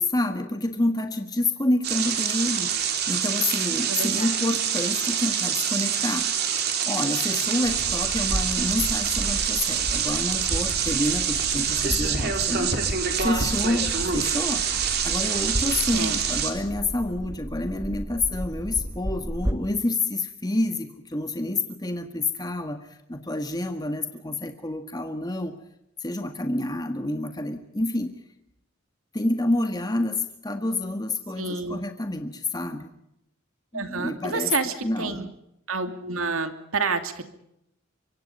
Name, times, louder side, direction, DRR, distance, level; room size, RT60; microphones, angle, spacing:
voice 1, 0.0-6.3 6.8-12.7 13.2-14.7 15.0-25.5 26.0-28.1 29.1-32.9 33.7-34.5 34.8-35.3, left 2 dB, 20° left, 6 dB, 1.7 m, -28 dB
sound 1, 1.8-16.5, right 7 dB, 50° right, 3.8 m, -26 dB
voice 2, 3.9-4.3 15.9-16.2 31.4-31.8 33.7-35.3 35.7-37.2, right 4 dB, 80° right, 8 dB, 2.6 m, -29 dB
sound 2, 7.6-19.5, equal, 15° right, 1.6 m, -34 dB
25.0 x 24.5 x 5.5 m, 0.80 s
head